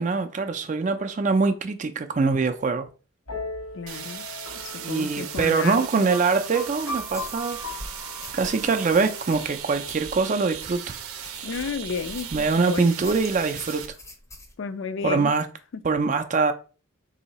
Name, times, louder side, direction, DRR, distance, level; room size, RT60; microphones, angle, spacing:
voice 1, 0.0-2.9 4.8-7.6 8.3-11.0 12.3-13.9 15.0-15.5 15.8-16.5, right 4 dB, 35° right, 0.4 m, -23 dB
sound 1, 3.3-10.8, left 2 dB, 80° left, 1.3 m, -39 dB
voice 2, 3.7-4.2 4.6-6.1 11.4-12.9 14.6-15.3 15.7-15.8, left 5 dB, 60° left, 0.4 m, -32 dB
sound 2, 3.9-13.9, right 9 dB, 85° right, 0.6 m, -38 dB
sound 3, 7.1-12.6 13.0-14.5, left 1 dB, 15° left, 0.6 m, -44 dB
3.8 x 2.7 x 4.0 m
head